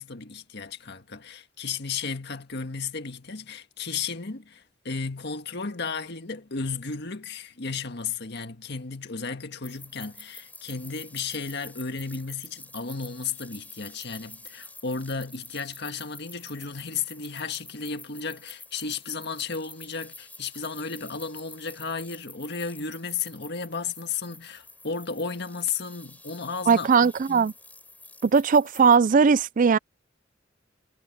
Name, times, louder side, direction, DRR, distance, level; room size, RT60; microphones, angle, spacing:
voice 1, 0.0-27.5, left 5 dB, 60° left, 1.7 m, -34 dB
sound 1, 9.6-29.0, left 2 dB, 10° left, 6.3 m, -48 dB
voice 2, 26.7-27.5 28.2-29.8, right 5 dB, 45° right, 0.4 m, -19 dB
head